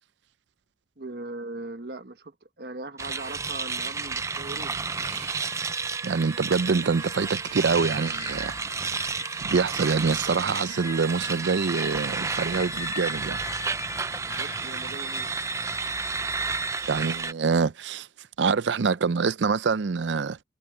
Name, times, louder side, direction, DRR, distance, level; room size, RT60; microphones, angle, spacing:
voice 1, 1.0-4.8 14.2-15.3, right 2 dB, 60° right, 1.3 m, -39 dB
sound 1, 3.0-17.3, right 4 dB, 15° right, 0.4 m, -31 dB
sound 2, 3.8-7.8 8.1-8.2 8.8-8.9, right 8 dB, 40° right, 4.4 m, -50 dB
voice 2, 6.0-8.6 9.4-13.4 16.9-18.1 18.4-20.4, right 5 dB, 85° right, 0.5 m, -25 dB
sound 3, 7.5-15.0, left 10 dB, 35° left, 1.1 m, -44 dB
head